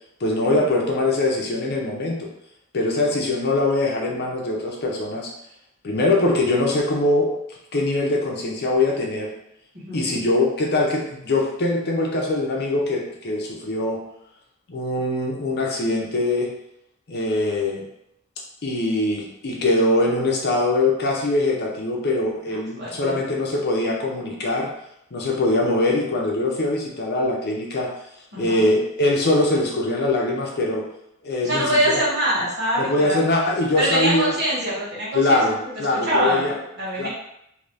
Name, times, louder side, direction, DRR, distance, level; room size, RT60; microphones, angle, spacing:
voice 1, 0.2-2.3 2.7-5.3 5.8-7.3 7.7-9.3 9.9-14.0 14.7-16.5 17.1-17.8 18.6-24.7 25.1-27.9 28.4-30.8 31.2-32.0 32.8-34.3 35.1-36.6 37.0-37.1, left 2 dB, 50° left, -1 dB, 0.7 m, -22 dB
voice 2, 9.7-10.2 22.8-23.2 28.3-28.6 31.4-33.2 33.8-35.7 36.0-37.1, right 1 dB, 55° right, -7 dB, 1.5 m, -24 dB
2.8 x 2.6 x 3.3 m, 0.79 s
head